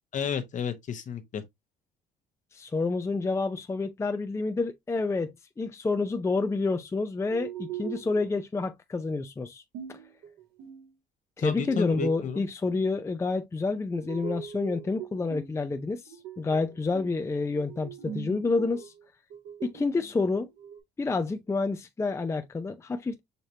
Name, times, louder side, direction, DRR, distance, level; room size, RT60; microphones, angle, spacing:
voice 1, 0.1-1.4 11.4-12.4, left 7 dB, 50° left, 1.0 m, -32 dB
voice 2, 2.5-9.6 9.9-10.0 11.4-18.9 19.6-20.5 21.0-23.2, left 3 dB, 15° left, 0.5 m, -29 dB
sound 1, 7.3-8.3 9.7-10.9 11.4-12.4 13.9-15.6 16.1-17.2 17.5-19.0 19.3-20.8, right 9 dB, 90° right, 1.8 m, -41 dB
6.6 x 3.0 x 2.7 m
cardioid pair, 110°, 17 cm